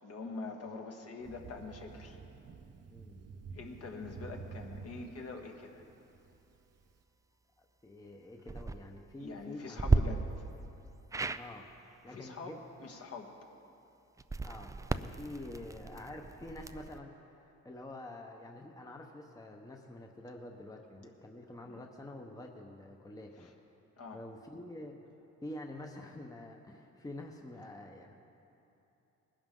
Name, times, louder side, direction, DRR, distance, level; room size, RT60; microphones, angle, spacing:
voice 1, 0.0-2.2 3.5-5.8 9.2-10.2 12.0-13.3 21.7-21.8 23.4-23.5 24.0-24.2, left 4 dB, 50° left, 2 dB, 1.6 m, -44 dB
Thunder, 1.2-6.9, right 5 dB, 55° right, 0.8 m, -50 dB
voice 2, 2.9-3.3 7.8-10.0 11.4-11.7 12.0-12.6 14.4-17.1 17.6-23.5 24.1-25.0 25.4-28.1, left 1 dB, 10° left, 2 dB, 1.0 m, -47 dB
sound 1, 8.4-8.8 9.8-10.0 11.1-11.4 14.2-17.0, right 3 dB, 10° right, 0.3 m, -33 dB
20.0 x 11.5 x 3.8 m, 2.9 s
cardioid pair, 90°, 30 cm